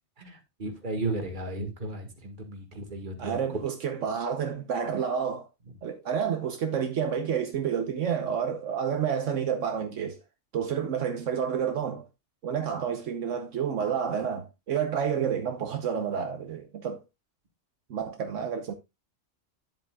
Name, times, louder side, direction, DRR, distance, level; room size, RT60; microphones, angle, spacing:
voice 1, 0.2-3.4, right 2 dB, 40° right, 1.8 m, -34 dB
voice 2, 3.2-5.5 5.8-10.2 10.5-12.0 12.4-17.0 17.9-18.7, right 7 dB, 75° right, 1.2 m, -29 dB
10.5 x 7.7 x 2.3 m
omnidirectional pair, 1.3 m